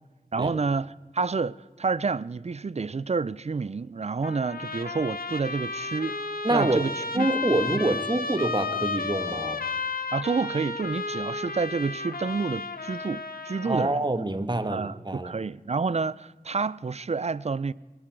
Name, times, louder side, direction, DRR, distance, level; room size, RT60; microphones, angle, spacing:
voice 1, 0.3-6.2 6.5-7.3 7.7-7.9 10.1-14.0 14.7-17.7, right 4 dB, 45° right, 0.4 m, -29 dB
Trumpet, 4.2-13.9, left 4 dB, 75° left, 1.1 m, -33 dB
voice 2, 6.4-6.9 7.1-9.6 13.6-15.3, right 2 dB, 30° right, 1.2 m, -26 dB
23.0 x 12.5 x 4.6 m
wide cardioid pair, 50°, 15 cm